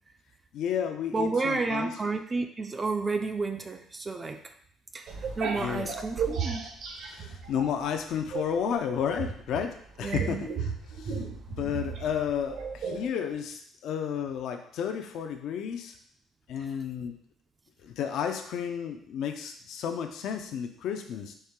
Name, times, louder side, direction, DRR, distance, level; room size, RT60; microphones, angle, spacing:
voice 1, 0.5-2.0 5.5-5.9 7.0-11.2 11.5-16.0 16.5-17.1 17.8-21.3, left 8 dB, 70° left, 5 dB, 0.4 m, -32 dB
voice 2, 1.1-4.4 4.9-6.6 10.0-10.4, right 3 dB, 25° right, 6 dB, 0.3 m, -31 dB
sound 1, 5.1-7.9 8.3-13.1, right 6 dB, 65° right, 0.9 m, -34 dB
4.3 x 3.2 x 3.6 m, 0.63 s
cardioid pair, 120°, 0 cm